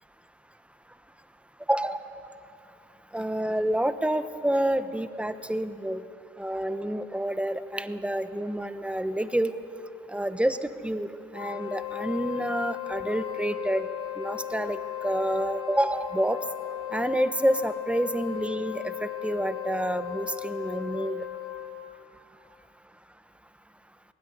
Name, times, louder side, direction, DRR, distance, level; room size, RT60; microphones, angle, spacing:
voice 1, 1.7-2.0 3.1-6.0 6.4-9.5 10.1-11.1 11.3-13.8 14.2-16.4 16.9-21.2, right 1 dB, 5° right, 11 dB, 1.1 m, -28 dB
Wind instrument woodwind instrument, 11.3-21.9, left 14 dB, 80° left, 3.3 m, -36 dB
20.5 x 16.0 x 9.9 m, 2.6 s
cardioid pair, 90°, 20 cm